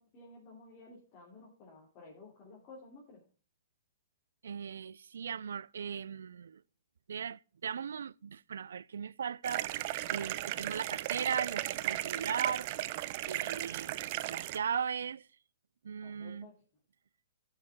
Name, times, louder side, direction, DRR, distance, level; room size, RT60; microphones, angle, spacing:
voice 1, 0.0-3.2 16.0-16.6, left 3 dB, 35° left, 3.2 m, -54 dB
voice 2, 4.4-6.6 7.1-12.7 13.2-14.0 14.3-15.3 15.8-16.5, right 7 dB, 85° right, 0.3 m, -38 dB
sound 1, 9.4-14.6, right 16 dB, 40° right, 0.6 m, -36 dB
11.5 x 6.5 x 3.6 m
hypercardioid pair, 150°, 0 cm